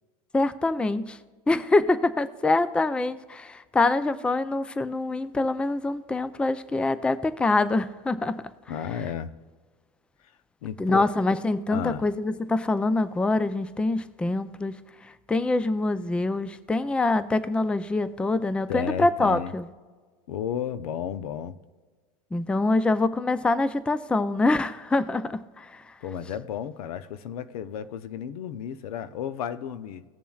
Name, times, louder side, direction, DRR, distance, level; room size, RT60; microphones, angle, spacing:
voice 1, 0.3-1.2 1.5-8.4 10.8-14.7 15.3-19.7 22.3-25.8, left 2 dB, 5° left, 14 dB, 0.4 m, -25 dB
voice 2, 8.7-9.3 10.6-11.1 11.7-12.0 18.7-19.5 20.3-21.6 26.0-30.0, left 8 dB, 85° left, 13 dB, 0.7 m, -33 dB
18.0 x 7.1 x 2.4 m, 1.4 s
supercardioid pair, 125°, 19 cm